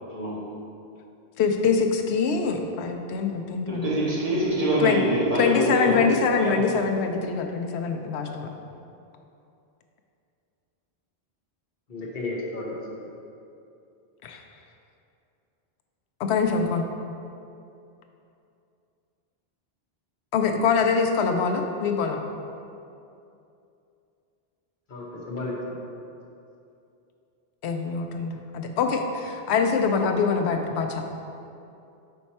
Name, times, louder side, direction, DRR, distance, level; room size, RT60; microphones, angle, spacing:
voice 1, 1.4-3.9 4.8-5.0 5.4-8.5 14.2-14.4 16.2-16.8 20.3-22.2 27.6-31.0, left 5 dB, 85° left, 4 dB, 0.9 m, -24 dB
voice 2, 3.7-6.0 6.4-6.5, right 1 dB, 35° right, -8 dB, 1.6 m, -24 dB
voice 3, 11.9-13.1 24.9-25.8, left 2 dB, 50° left, -4 dB, 1.1 m, -33 dB
5.6 x 4.4 x 4.2 m, 2.6 s
omnidirectional pair, 1.1 m